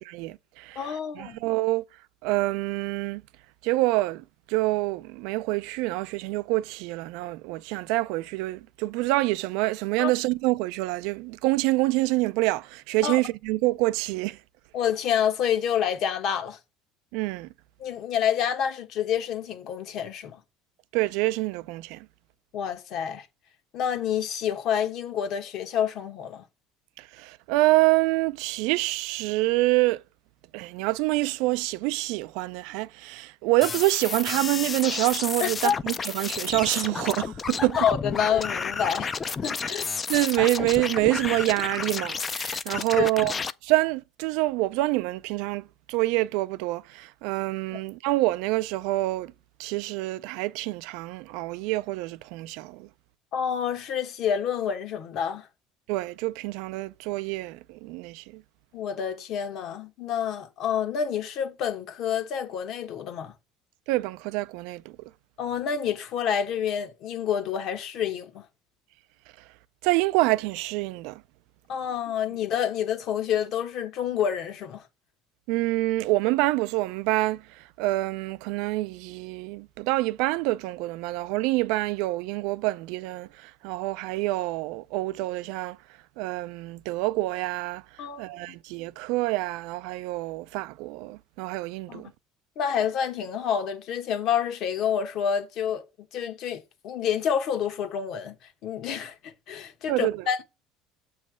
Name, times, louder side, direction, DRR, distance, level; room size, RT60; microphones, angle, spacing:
voice 1, 0.1-1.8 2.2-3.2 3.6-14.4 17.1-17.5 20.9-22.1 27.0-30.0 30.5-37.8 40.1-43.3 43.6-49.3 49.6-52.9 55.9-58.4 63.9-65.0 69.8-71.2 75.5-85.8 86.2-92.1 99.9-100.2, right 20 dB, 75° right, 0.4 m, -26 dB
voice 2, 0.7-1.4 10.0-10.1 13.0-13.2 14.7-16.6 17.8-20.4 22.5-23.3 23.7-26.4 35.4-35.8 37.8-39.8 43.0-43.1 47.7-47.8 53.3-55.5 58.7-63.3 65.4-68.4 71.7-74.8 88.0-88.4 91.9-92.0 92.6-95.8 96.1-98.4 98.6-100.4, left 8 dB, 50° left, 1.0 m, -28 dB
sound 1, 33.6-43.5, left 5 dB, 20° left, 0.4 m, -31 dB
7.5 x 3.2 x 6.2 m
cardioid pair, 150°, 0 cm